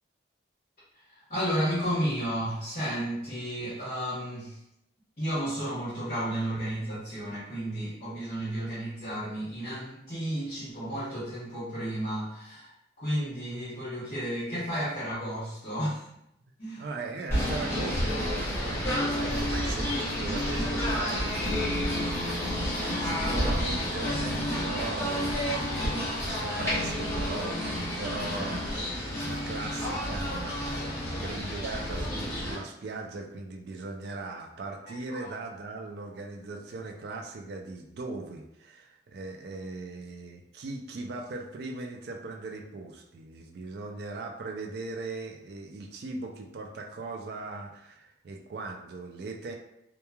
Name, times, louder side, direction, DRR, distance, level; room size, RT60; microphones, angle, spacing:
voice 1, 0.9-4.6 5.2-16.1 16.6-16.8 34.9-35.3, equal, 40° left, -13 dB, 0.9 m, -32 dB
voice 2, 16.8-49.5, right 3 dB, 60° right, 2 dB, 0.3 m, -39 dB
Singing / Bird, 17.3-32.5, equal, 15° left, 1.0 m, -30 dB
2.9 x 2.2 x 2.2 m, 0.80 s
head